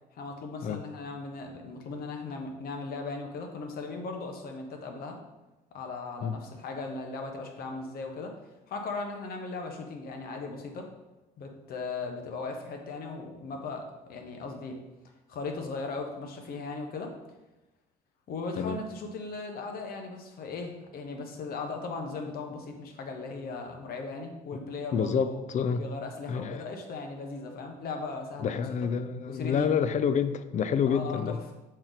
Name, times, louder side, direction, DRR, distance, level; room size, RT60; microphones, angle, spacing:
voice 1, 0.1-5.2 5.7-8.4 8.7-10.9 11.4-14.8 15.3-17.1 18.3-25.4 25.8-28.9 29.3-29.7 30.9-31.3, left 3 dB, 60° left, 3 dB, 1.3 m, -38 dB
voice 2, 24.9-25.8 26.3-26.7 28.4-31.4, left 7 dB, 45° left, 12 dB, 0.5 m, -28 dB
7.6 x 4.4 x 4.1 m, 1.0 s
cardioid pair, 110°, 17 cm